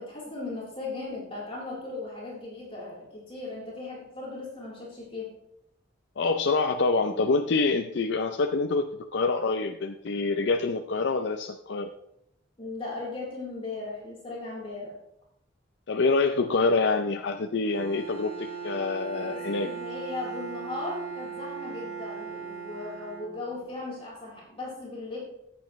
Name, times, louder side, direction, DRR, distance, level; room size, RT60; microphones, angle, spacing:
voice 1, 0.0-5.3 12.6-15.0 19.3-25.2, left 3 dB, 30° left, -5 dB, 3.8 m, -37 dB
voice 2, 6.2-11.9 15.9-19.7, left 3 dB, 65° left, 5 dB, 0.5 m, -26 dB
Bowed string instrument, 17.6-23.8, right 6 dB, 85° right, 4.4 m, -39 dB
14.5 x 8.7 x 3.1 m, 0.77 s
head